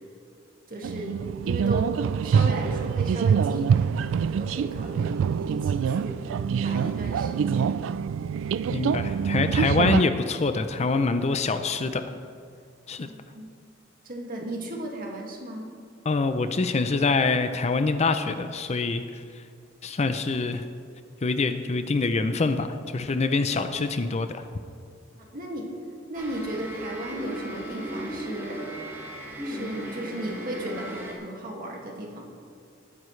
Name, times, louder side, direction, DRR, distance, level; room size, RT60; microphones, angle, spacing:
voice 1, 0.7-1.2 1.4-1.9 2.2-7.8 13.0-13.5 14.0-15.7 25.1-25.7 26.1-28.6 29.4-32.3, right 1 dB, 45° right, -1 dB, 2.1 m, -35 dB
sound 1, 0.8-10.0, right 7 dB, 75° right, 0.3 m, -25 dB
voice 2, 8.7-12.0 12.9-13.1 16.1-19.0 19.8-20.6 21.2-24.4, left 3 dB, 35° left, 9 dB, 0.5 m, -25 dB
sound 2, 26.1-31.1, right 1 dB, 15° right, 2.2 m, -36 dB
19.5 x 9.7 x 3.3 m, 2.3 s
head